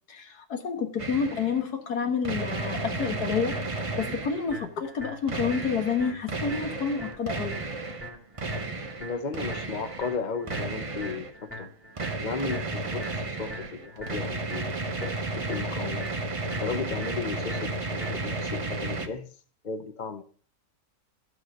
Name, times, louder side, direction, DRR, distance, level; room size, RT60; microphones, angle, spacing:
voice 1, 0.1-7.5, left 6 dB, 85° left, 1.9 m, -29 dB
sound 1, 1.0-1.6 2.2-4.6 5.3-8.1 8.4-10.2 10.5-11.3 12.0-19.1, right 2 dB, 25° right, 0.9 m, -33 dB
sound 2, 2.5-18.5, equal, 5° left, 3.0 m, -44 dB
voice 2, 9.0-11.7 12.2-14.7 15.0-16.1 16.6-19.4 19.6-20.2, left 5 dB, 40° left, 0.7 m, -35 dB
12.5 x 4.9 x 6.4 m
omnidirectional pair, 1.6 m